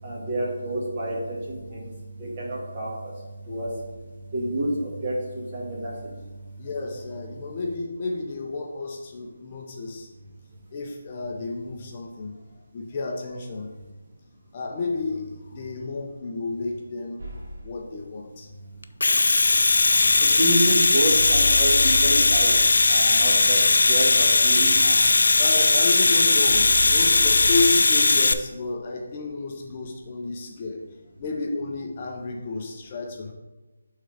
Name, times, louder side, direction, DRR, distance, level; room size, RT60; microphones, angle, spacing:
voice 1, 0.0-1.9 2.2-3.1 3.4-3.7 4.3-5.9 20.2-22.5 22.9-25.0, right 1 dB, 30° right, -3 dB, 1.8 m, -28 dB
voice 2, 6.6-10.1 10.7-13.7 14.5-18.5 25.4-33.3, left 3 dB, 30° left, 1 dB, 0.6 m, -31 dB
sound 1, 17.2-17.8 21.0-23.1 26.5-27.6, left 1 dB, 70° right, 2.1 m, -33 dB
Domestic sounds home sounds, 18.8-28.3, left 3 dB, 75° left, 0.4 m, -18 dB
9.2 x 3.7 x 3.4 m, 1.1 s
figure-of-eight pair, 165°, 0 cm